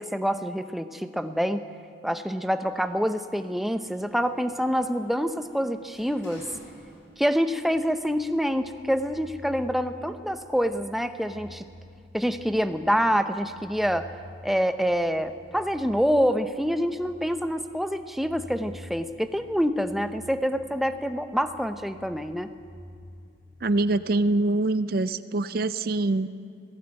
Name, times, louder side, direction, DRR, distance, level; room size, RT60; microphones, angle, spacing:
voice 1, 0.0-1.6 2.0-6.4 7.2-11.6 12.1-14.1 14.4-22.5, equal, ahead, 8 dB, 0.7 m, -26 dB
Sliding door, 2.7-7.5 7.8-8.8, left 1 dB, 85° left, 6.9 m, -53 dB
sound 1, 7.6-24.5, left 1 dB, 60° left, 3.2 m, -49 dB
voice 2, 23.6-26.3, right 2 dB, 50° right, 13 dB, 0.5 m, -24 dB
18.5 x 15.5 x 8.9 m, 2.4 s
head